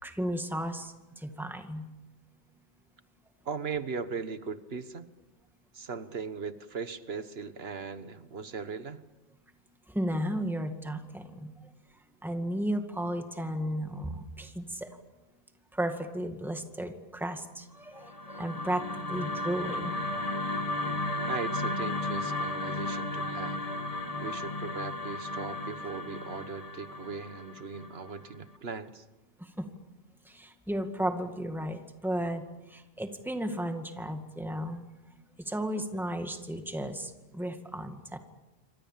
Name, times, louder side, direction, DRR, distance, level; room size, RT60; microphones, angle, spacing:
voice 1, 0.0-1.8 9.9-11.5 12.2-14.9 15.7-20.0 29.4-29.7 30.3-32.4 32.7-34.8 35.4-38.2, equal, ahead, 6 dB, 2.0 m, -34 dB
voice 2, 3.4-5.1 5.7-9.0 21.3-23.6 24.2-29.0, right 5 dB, 75° right, 12 dB, 1.6 m, -38 dB
sound 1, 18.0-28.3, left 2 dB, 35° left, 1.9 m, -34 dB
28.0 x 25.0 x 7.4 m, 1.0 s
omnidirectional pair, 1.0 m